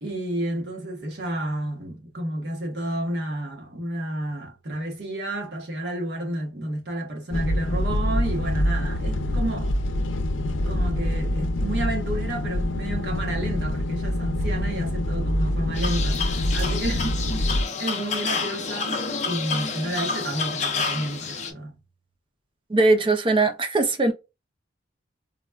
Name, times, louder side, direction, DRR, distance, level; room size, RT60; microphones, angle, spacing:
voice 1, 0.0-9.7 10.7-21.8, right 1 dB, 60° right, 1.0 m, -31 dB
sound 1, 7.3-17.6, left 1 dB, 85° left, 0.5 m, -25 dB
sound 2, 15.7-21.5, left 5 dB, 40° left, 0.5 m, -29 dB
voice 2, 22.7-24.1, right 3 dB, 25° right, 0.5 m, -20 dB
4.0 x 2.1 x 2.2 m
head